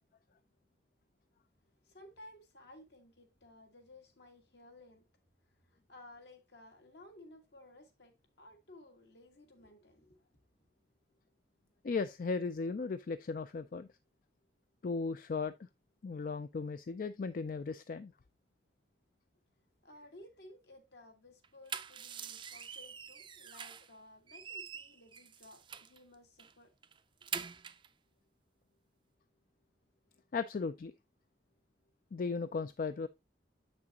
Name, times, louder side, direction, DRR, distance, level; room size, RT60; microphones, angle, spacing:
voice 1, 1.8-5.1 5.7-10.3 19.8-26.7 27.2-27.6, left 1 dB, 70° left, 1.7 m, -57 dB
voice 2, 11.8-13.9 14.8-15.7 16.0-18.1 30.3-30.9 32.1-33.1, left 4 dB, 50° left, 0.4 m, -36 dB
sound 1, 21.4-23.9 24.3-26.0 26.4-26.5 26.8-27.9, right 7 dB, 25° right, 0.4 m, -44 dB
7.7 x 6.1 x 2.8 m
head